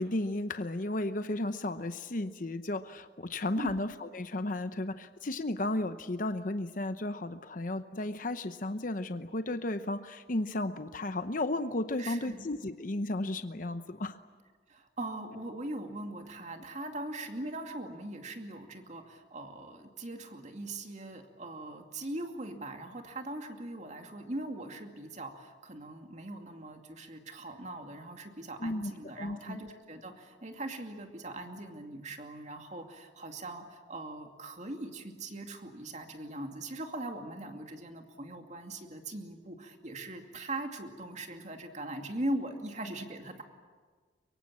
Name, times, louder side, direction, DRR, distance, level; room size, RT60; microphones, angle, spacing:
voice 1, 0.0-14.2 28.6-28.9 29.2-29.6, left 2 dB, 50° left, 10 dB, 0.8 m, -34 dB
voice 2, 12.0-12.5 14.7-43.4, right 1 dB, 40° right, 5 dB, 2.4 m, -40 dB
24.0 x 23.5 x 8.7 m, 1.5 s
head